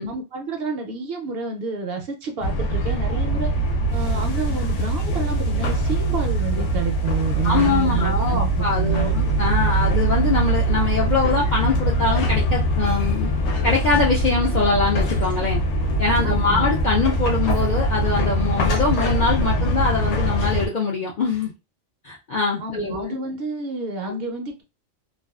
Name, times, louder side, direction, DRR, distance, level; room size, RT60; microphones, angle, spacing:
voice 1, 0.1-3.5 3.9-9.2 16.2-16.7 22.6-24.6, right 4 dB, 65° right, 4 dB, 0.7 m, -29 dB
sound 1, 2.4-20.7, right 1 dB, 75° left, 0.9 m, -22 dB
voice 2, 7.4-13.3 13.6-15.6 16.0-21.5 22.0-23.2, left 4 dB, 60° left, -4 dB, 0.5 m, -23 dB
2.3 x 2.3 x 2.3 m, 0.28 s
omnidirectional pair, 1.2 m